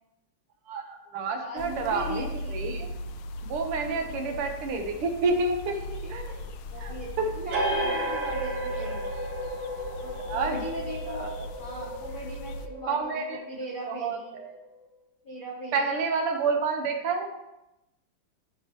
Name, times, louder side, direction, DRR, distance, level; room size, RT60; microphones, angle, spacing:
voice 1, 0.7-2.9 3.5-5.8 6.1-6.3 6.8-7.3 7.9-8.1 10.3-10.6 11.1-11.4 12.9-13.4 13.9-14.6 15.7-17.3, right 4 dB, 85° right, 4 dB, 1.9 m, -29 dB
voice 2, 1.4-2.8 3.6-4.4 5.7-9.1 10.0-11.3 11.6-14.4 15.2-15.9, equal, 55° left, -3 dB, 0.5 m, -39 dB
sound 1, 1.6-12.7, left 1 dB, 75° left, 1.3 m, -38 dB
sound 2, 7.5-14.7, right 1 dB, 60° right, 1.9 m, -34 dB
14.0 x 4.7 x 3.0 m, 0.95 s
omnidirectional pair, 2.4 m